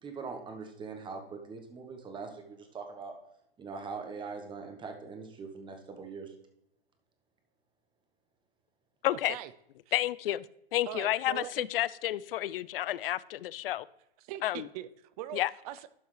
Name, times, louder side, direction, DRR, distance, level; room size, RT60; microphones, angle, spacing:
voice 1, 0.0-3.2 3.6-6.3, right 4 dB, 15° right, 5 dB, 1.1 m, -42 dB
voice 2, 9.0-9.4 9.9-10.5 10.7-13.9 14.4-14.7 15.3-15.5, left 14 dB, 70° left, 20 dB, 0.4 m, -30 dB
voice 3, 10.9-11.7 14.2-15.9, right 12 dB, 40° right, 15 dB, 0.5 m, -41 dB
12.0 x 5.5 x 3.3 m, 0.80 s
hypercardioid pair, 120°, 29 cm